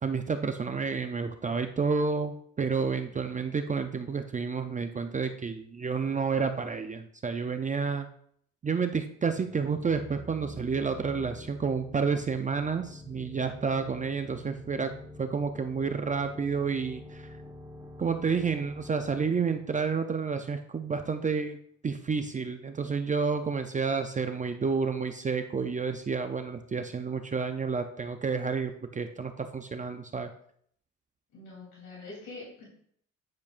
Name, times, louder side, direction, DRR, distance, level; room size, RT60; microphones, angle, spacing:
voice 1, 0.0-8.1 8.6-14.9 15.2-17.3 18.0-21.6 21.8-30.3, right 5 dB, 25° right, 7 dB, 0.5 m, -30 dB
sound 1, 9.4-20.9, left 2 dB, 5° right, 1.2 m, -47 dB
voice 2, 31.3-32.6, left 3 dB, 85° left, -4 dB, 3.2 m, -44 dB
9.5 x 7.0 x 2.5 m, 0.65 s
cardioid pair, 90°, 30 cm